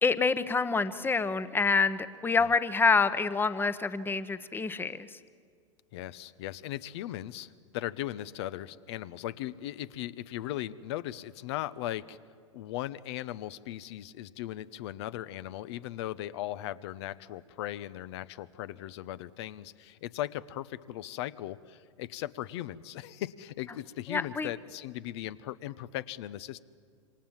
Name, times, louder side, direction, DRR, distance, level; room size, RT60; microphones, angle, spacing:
voice 1, 0.0-5.1 24.1-24.5, left 4 dB, 15° left, 13 dB, 1.1 m, -27 dB
voice 2, 5.9-12.2 12.5-26.6, left 13 dB, 55° left, 16 dB, 1.0 m, -38 dB
27.0 x 25.5 x 7.4 m, 2.1 s
hypercardioid pair, 100°, 16 cm